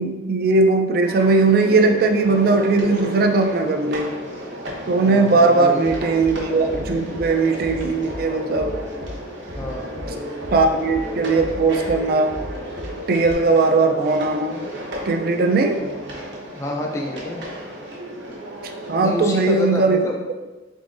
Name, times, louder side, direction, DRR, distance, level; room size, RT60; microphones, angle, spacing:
voice 1, 0.0-4.1 4.9-8.7 10.5-12.3 13.1-14.6 15.1-15.8 18.9-20.1, right 3 dB, 55° right, 5 dB, 0.4 m, -18 dB
sound 1, 1.0-19.7, equal, 80° right, 0.9 m, -33 dB
voice 2, 5.0-5.8 9.6-10.2 16.5-17.4 19.0-20.1, left 1 dB, 15° left, 0 dB, 0.3 m, -28 dB
Bass drum, 5.8-6.3 6.7-7.3 7.6-8.2 8.5-9.1 9.5-10.1 10.4-11.0 11.3-12.0 12.3-12.9 13.2-13.3, left 1 dB, 55° left, 0.6 m, -35 dB
3.8 x 3.7 x 2.5 m, 1.2 s
head